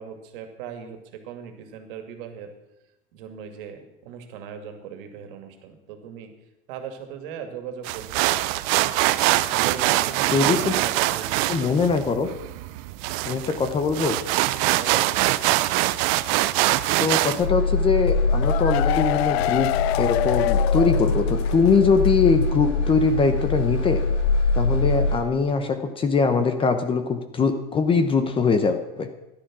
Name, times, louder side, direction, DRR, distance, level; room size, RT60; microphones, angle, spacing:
voice 1, 0.0-2.5 3.1-6.3 6.7-8.5 9.5-12.3 14.6-15.1, right 8 dB, 60° right, 6 dB, 2.4 m, -38 dB
sound 1, 7.8-17.4, right 17 dB, 40° right, 0.6 m, -23 dB
voice 2, 10.3-10.8 11.5-12.3 13.2-14.2 17.0-19.7 20.0-24.0 24.5-29.1, left 5 dB, 15° left, 8 dB, 0.8 m, -22 dB
sound 2, 17.4-25.2, left 3 dB, 55° left, 3.9 m, -23 dB
sound 3, 18.1-21.7 22.0-22.1 22.4-22.5, left 15 dB, 80° left, 0.6 m, -26 dB
13.5 x 11.5 x 6.2 m, 0.94 s
supercardioid pair, 155°, 31 cm